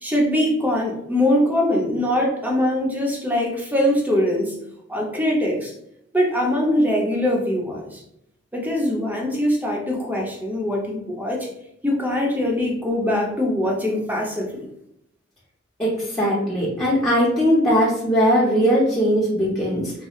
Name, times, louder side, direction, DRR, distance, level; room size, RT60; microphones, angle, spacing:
voice 1, 0.0-4.5 4.9-5.7 6.1-8.0 8.5-11.5 11.8-14.6, left 1 dB, 10° right, -2 dB, 0.9 m, -22 dB
voice 2, 15.8-19.9, equal, 15° left, -8 dB, 1.1 m, -19 dB
5.6 x 2.2 x 3.1 m, 0.76 s
head